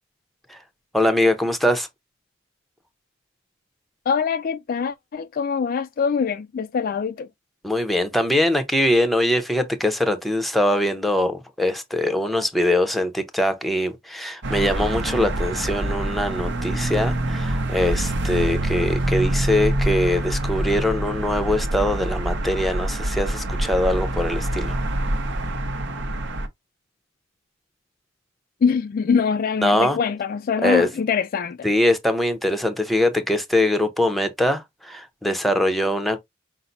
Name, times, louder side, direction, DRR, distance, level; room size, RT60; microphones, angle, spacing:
voice 1, 0.9-1.9 7.6-24.8 29.6-30.0 30.6-30.9 31.6-36.2, left 1 dB, ahead, 0.7 m, -22 dB
voice 2, 4.1-7.3 28.6-31.7, left 6 dB, 45° left, 0.3 m, -23 dB
sound 1, 14.4-26.5, right 1 dB, 60° right, 0.7 m, -25 dB
5.6 x 2.0 x 3.9 m
head